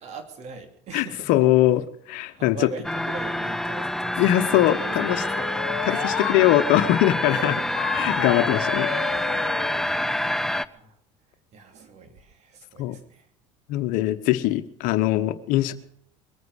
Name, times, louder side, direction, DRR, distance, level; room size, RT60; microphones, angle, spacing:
voice 1, 0.0-1.4 2.3-6.2 7.3-8.3 9.8-11.0 11.5-13.3 15.6-15.7, right 4 dB, 50° right, 6 dB, 3.0 m, -42 dB
voice 2, 0.9-2.7 4.2-5.2 5.8-7.5 7.9-9.0 9.4-9.7 12.8-13.0 13.7-15.7, left 14 dB, 65° left, 11 dB, 1.1 m, -22 dB
sound 1, 2.8-10.7, left 1 dB, 5° left, 0.6 m, -27 dB
sound 2, 4.6-6.4 7.8-9.8, left 16 dB, 90° left, 0.6 m, -33 dB
22.0 x 9.4 x 6.4 m, 0.66 s
hypercardioid pair, 85°, 15 cm